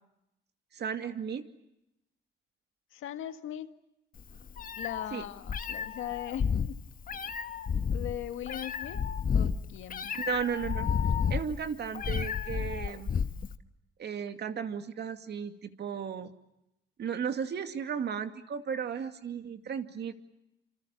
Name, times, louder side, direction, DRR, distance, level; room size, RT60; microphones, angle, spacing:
voice 1, 0.7-1.5 5.1-5.2 10.1-10.9 11.3-13.1 14.0-16.3 17.0-20.1, right 7 dB, 60° right, 7 dB, 2.4 m, -35 dB
voice 2, 2.9-3.7 4.8-6.8 7.9-9.0 9.3-10.2, left 11 dB, 85° left, 8 dB, 1.9 m, -39 dB
Meow, 4.2-13.5, left 7 dB, 45° left, 1.3 m, -31 dB
27.0 x 26.5 x 7.1 m, 0.86 s
cardioid pair, 90°, 20 cm